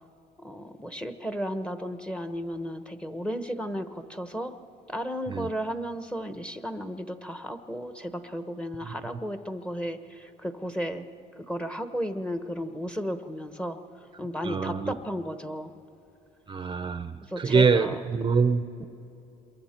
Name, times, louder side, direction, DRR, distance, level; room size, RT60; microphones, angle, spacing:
voice 1, 0.4-4.6 4.9-11.0 11.4-13.8 14.2-15.7 17.2-18.0 18.8-18.9, equal, 5° left, 9 dB, 1.0 m, -34 dB
voice 2, 14.4-14.9 16.5-18.6, right 5 dB, 30° right, 10 dB, 0.7 m, -25 dB
27.5 x 22.5 x 4.4 m, 2.9 s
cardioid pair, 110°, 17 cm